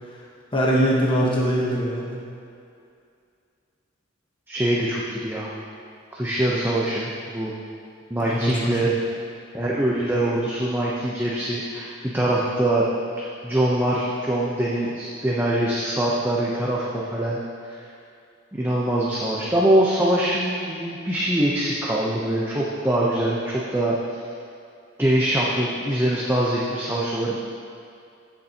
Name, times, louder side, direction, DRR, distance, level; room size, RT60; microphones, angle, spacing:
voice 1, 0.5-2.2 8.2-8.8, equal, 25° left, -4 dB, 1.1 m, -22 dB
voice 2, 4.5-5.5 6.1-7.5 8.1-8.9 9.5-12.9 13.2-17.4 17.6-17.9 18.5-24.2 25.0-27.4, right 1 dB, 10° right, -5 dB, 0.7 m, -23 dB
15.5 x 6.9 x 2.9 m, 2.4 s
head